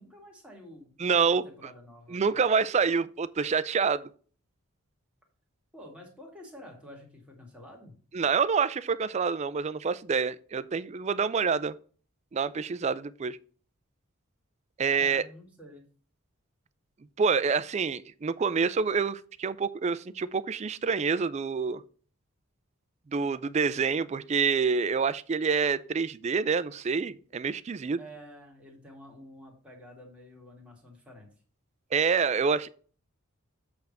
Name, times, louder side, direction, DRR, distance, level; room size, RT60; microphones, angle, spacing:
voice 1, 0.0-0.9 1.4-2.2 5.7-7.9 14.9-15.9 28.0-31.3, equal, 5° right, 2.0 m, -49 dB
voice 2, 1.0-1.5 2.1-4.1 8.1-11.8 12.3-13.4 14.8-15.2 17.2-21.8 23.1-28.0 31.9-32.7, right 5 dB, 30° right, 0.3 m, -27 dB
8.0 x 3.5 x 6.4 m
head